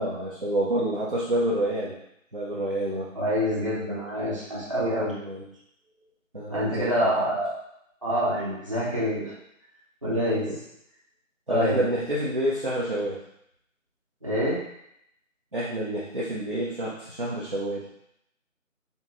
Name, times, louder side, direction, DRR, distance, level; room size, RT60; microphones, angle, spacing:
voice 1, 0.0-1.9 2.3-3.1 5.2-5.4 6.3-7.1 10.5-10.6 11.5-13.2 15.5-17.8, right 1 dB, 40° right, -6 dB, 0.5 m, -28 dB
voice 2, 3.1-5.2 6.5-7.5 8.0-9.2 10.0-10.5 11.5-11.8 14.2-14.6, equal, 25° right, -9 dB, 0.9 m, -26 dB
4.3 x 3.5 x 2.4 m, 0.77 s
figure-of-eight pair, 170°, 41 cm